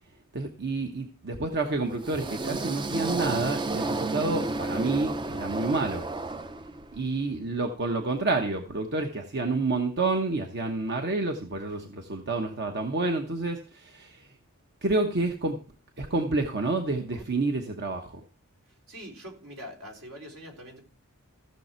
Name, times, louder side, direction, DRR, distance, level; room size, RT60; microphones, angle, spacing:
voice 1, 0.3-6.1 6.9-14.4 14.8-15.6 16.0-18.2, right 3 dB, 50° right, 1.1 m, -29 dB
sound 1, 1.9-7.0, right 2 dB, 20° right, 0.5 m, -32 dB
voice 2, 18.9-20.8, equal, 75° right, 3.8 m, -43 dB
15.0 x 6.7 x 4.4 m
head